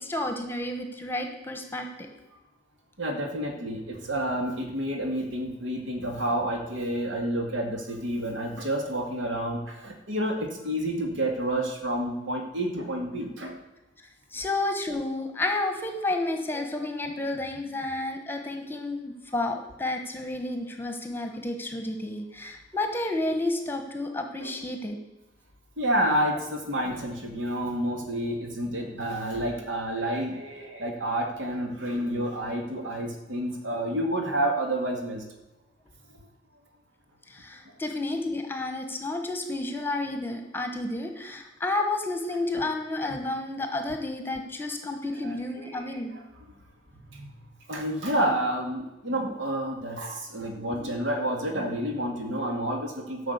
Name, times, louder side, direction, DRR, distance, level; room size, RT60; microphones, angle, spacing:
voice 1, 0.0-1.9 14.3-25.0 37.3-46.1, left 2 dB, 10° left, 5 dB, 1.1 m, -31 dB
voice 2, 3.0-13.5 24.4-24.5 25.8-35.2 45.2-46.0 47.1-47.2 47.7-53.3, right 1 dB, 80° right, 2 dB, 2.0 m, -29 dB
12.5 x 6.0 x 8.1 m, 1.0 s
head